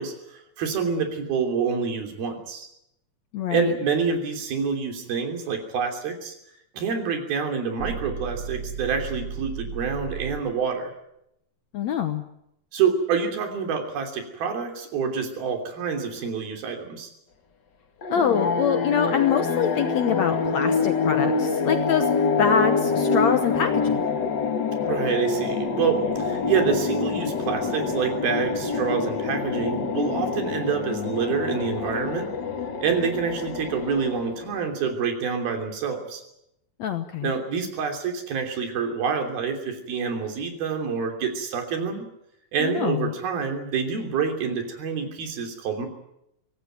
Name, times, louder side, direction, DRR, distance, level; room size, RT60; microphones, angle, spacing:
voice 1, 0.0-2.7 3.5-6.4 6.7-10.9 12.7-17.1 24.8-32.3 32.8-36.2 37.2-42.0 42.5-45.9, right 6 dB, 75° right, 5 dB, 5.0 m, -27 dB
voice 2, 3.3-3.8 11.7-12.2 18.1-22.1 22.4-24.0 36.8-37.3 42.6-43.1, left 7 dB, 65° left, 8 dB, 1.8 m, -25 dB
sound 1, 7.8-10.6, right 6 dB, 50° right, 3.0 m, -34 dB
sound 2, 18.0-34.6, left 4 dB, 45° left, 1.5 m, -26 dB
23.0 x 17.5 x 9.2 m, 0.81 s
omnidirectional pair, 4.3 m